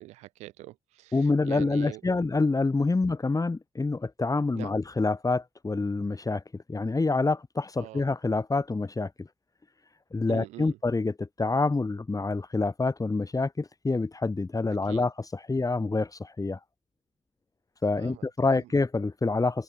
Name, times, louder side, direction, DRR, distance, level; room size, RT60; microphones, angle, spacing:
voice 1, 0.0-2.2 4.5-4.7 7.8-8.1 10.3-10.8 14.8-15.0 17.8-18.7, right 18 dB, 90° right, 6.4 m, -44 dB
voice 2, 1.1-9.3 10.1-16.6 17.8-19.6, left 3 dB, 30° left, 3.6 m, -27 dB
supercardioid pair, 45°, 11 cm